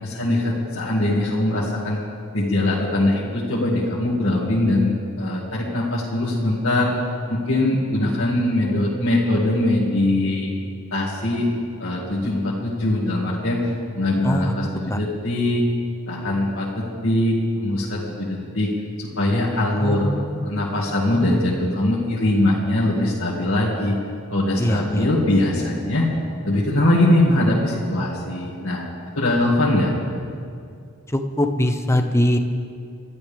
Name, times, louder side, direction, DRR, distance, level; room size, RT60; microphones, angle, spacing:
voice 1, 0.0-2.0 2.3-6.9 7.3-10.5 10.9-11.5 11.8-15.6 16.1-18.7 19.0-20.1 20.4-24.0 24.3-26.1 26.4-28.9 29.2-29.9, left 1 dB, 60° left, -7 dB, 2.3 m, -21 dB
voice 2, 19.8-20.6 21.1-21.3 24.6-25.0 31.1-32.4, left 1 dB, 15° left, 6 dB, 0.8 m, -22 dB
28.5 x 12.5 x 3.5 m, 2.3 s
head